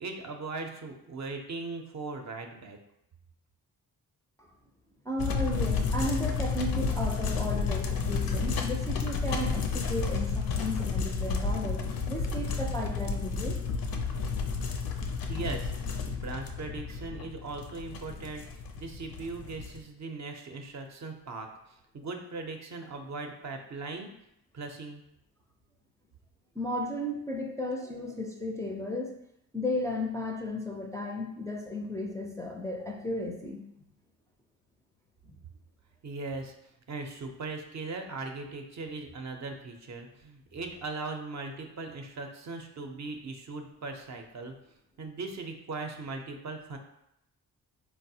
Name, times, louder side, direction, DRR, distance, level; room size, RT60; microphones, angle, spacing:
voice 1, 0.0-2.8 15.3-15.7 16.1-18.5 18.8-24.1 24.5-25.0 36.0-44.5 45.0-46.8, right 3 dB, 45° right, 4 dB, 0.5 m, -39 dB
voice 2, 5.0-13.6 26.6-29.1 29.5-33.6 35.3-35.4, left 1 dB, 10° left, -1 dB, 0.4 m, -34 dB
sound 1, 5.2-19.8, left 5 dB, 65° left, 0.5 m, -31 dB
3.9 x 2.0 x 2.7 m, 0.80 s
cardioid pair, 55°, 38 cm